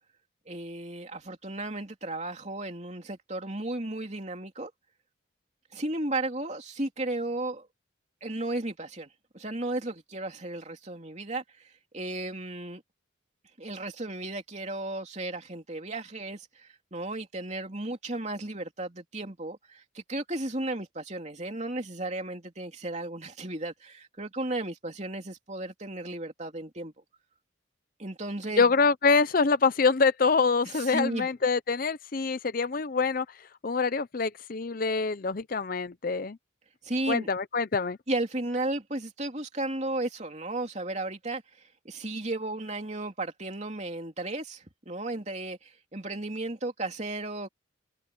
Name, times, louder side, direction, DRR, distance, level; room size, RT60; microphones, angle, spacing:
voice 1, 0.5-4.7 5.7-7.7 8.2-9.1 9.3-11.4 11.9-12.8 13.6-26.9 28.0-28.7 30.6-31.3 36.8-37.3 38.1-41.4 41.8-47.5, right 2 dB, 35° right, 3.1 m, -34 dB
voice 2, 28.6-33.3 33.6-36.4 37.1-38.0, left 4 dB, 45° left, 0.6 m, -25 dB
head